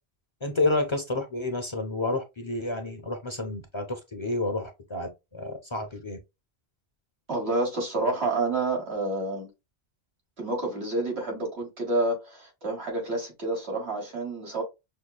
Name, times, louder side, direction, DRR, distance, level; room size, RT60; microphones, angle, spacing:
voice 1, 0.4-6.2, left 2 dB, 35° left, 0.6 m, -30 dB
voice 2, 7.3-9.5 10.4-14.6, right 2 dB, 90° right, 2.1 m, -29 dB
6.3 x 2.2 x 2.3 m
omnidirectional pair, 1.1 m